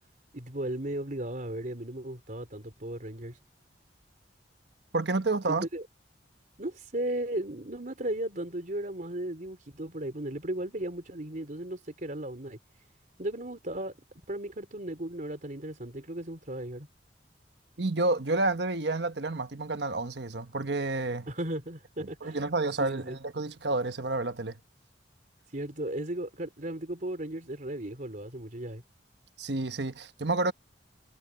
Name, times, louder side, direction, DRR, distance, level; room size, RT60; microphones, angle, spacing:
voice 1, 0.3-3.4 5.5-5.8 6.6-12.6 13.2-14.0 14.3-16.9 21.3-22.4 22.8-23.2 25.5-28.8, right 1 dB, 45° right, 4.1 m, -36 dB
voice 2, 4.9-5.6 17.8-21.3 22.0-24.5 29.4-30.5, right 2 dB, 70° right, 1.3 m, -29 dB
head